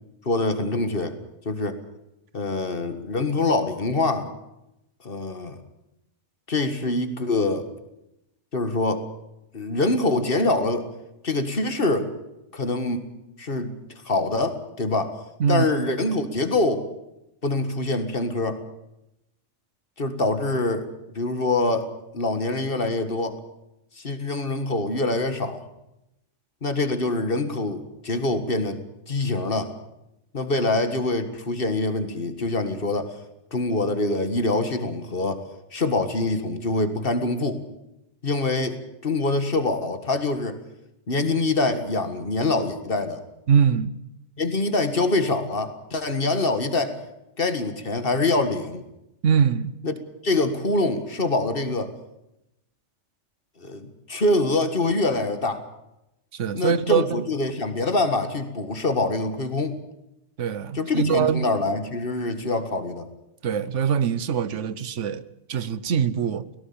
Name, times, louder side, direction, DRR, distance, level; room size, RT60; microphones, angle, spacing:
voice 1, 0.3-1.2 1.5-1.8 2.3-4.3 5.0-5.6 6.5-7.7 8.5-9.1 9.5-10.9 11.2-12.1 12.5-13.0 13.4-13.7 14.1-15.1 15.5-16.9 17.4-18.6 20.0-20.9 21.2-23.4 24.0-25.7 26.6-28.8 29.1-29.7 30.3-33.2 33.5-35.4 35.7-37.6 38.2-40.6 41.1-43.2 44.4-47.0 47.4-48.8 49.8-49.9 50.2-51.9 53.6-55.6 56.5-59.8 60.7-63.1, left 2 dB, 50° left, 9 dB, 2.0 m, -25 dB
voice 2, 43.5-43.9 49.2-49.7 56.3-57.2 60.4-61.5 63.4-66.5, right 7 dB, 80° right, 16 dB, 1.2 m, -23 dB
17.5 x 17.5 x 8.8 m, 0.87 s
omnidirectional pair, 1.2 m